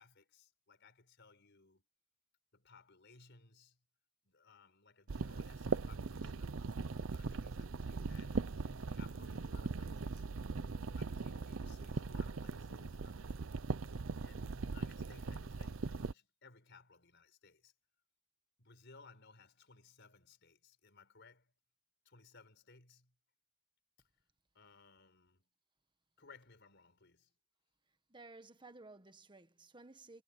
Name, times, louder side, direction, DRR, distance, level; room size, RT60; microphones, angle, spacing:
voice 1, 0.0-1.8 2.5-3.8 4.2-10.3 11.0-13.4 14.2-17.7 18.6-21.5 22.0-23.1 24.5-25.5 26.2-27.3, left 4 dB, 60° left, 4.9 m, -62 dB
sound 1, 5.1-16.1, right 4 dB, 75° right, 0.7 m, -40 dB
voice 2, 28.1-30.2, right 3 dB, 25° right, 1.5 m, -55 dB
head